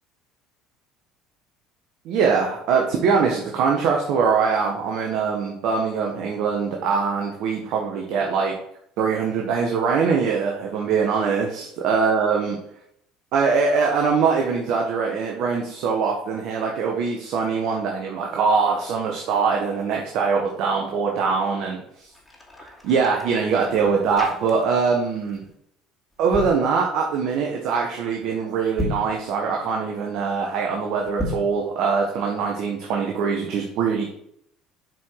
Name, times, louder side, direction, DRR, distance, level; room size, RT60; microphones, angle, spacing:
voice 1, 2.0-8.5 9.0-12.5 13.3-22.1 22.6-25.4 26.2-34.1, right 5 dB, 65° right, 0 dB, 1.3 m, -23 dB
sound 1, 22.0-24.9 25.2-25.5 26.1-26.6 28.6-29.2 31.1-31.6, left 2 dB, 10° left, 2.6 m, -33 dB
7.8 x 4.9 x 4.7 m, 0.73 s
hypercardioid pair, 75°, 0 cm